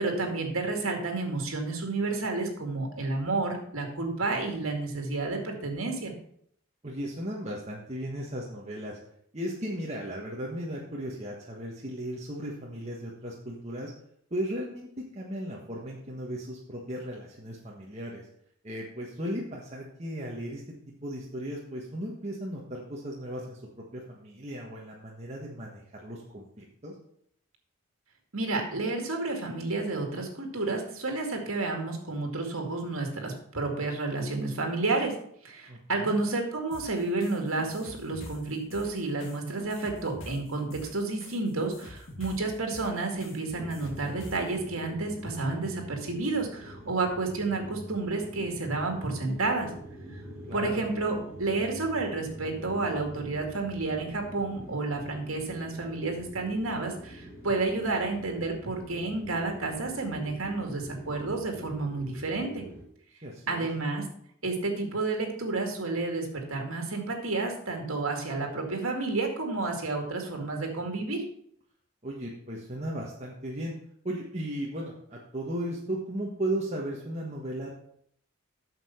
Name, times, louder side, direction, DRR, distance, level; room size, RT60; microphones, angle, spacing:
voice 1, 0.0-6.1 28.3-35.1 35.4-49.7 50.5-62.6 63.5-64.0 64.4-71.2, right 3 dB, 75° right, 3 dB, 2.2 m, -30 dB
voice 2, 6.8-9.0 9.3-13.9 14.3-18.2 18.6-20.7 21.0-23.6 23.9-26.9 35.7-36.2 50.5-50.8 63.2-63.7 72.0-73.7 74.0-77.7, right 1 dB, 30° right, -3 dB, 1.4 m, -36 dB
sound 1, 36.7-44.5, left 1 dB, 65° left, 2.2 m, -45 dB
sound 2, 43.5-62.8, right 1 dB, 10° right, 1.8 m, -45 dB
8.6 x 6.7 x 5.7 m, 0.67 s
head